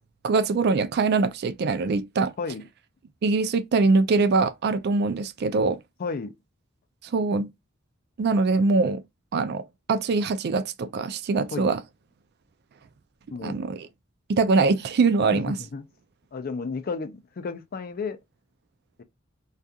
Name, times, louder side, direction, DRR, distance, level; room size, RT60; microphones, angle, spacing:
voice 1, 0.2-2.3 3.2-5.8 7.1-7.5 8.2-9.0 9.3-9.6 9.9-11.8 13.4-13.9 14.3-15.6, right 4 dB, 55° right, 0.4 m, -23 dB
voice 2, 6.0-6.3 11.5-11.7 13.3-13.7 15.3-15.8 16.3-18.2 19.0-19.1, left 4 dB, 45° left, 0.4 m, -32 dB
2.3 x 2.3 x 2.6 m
head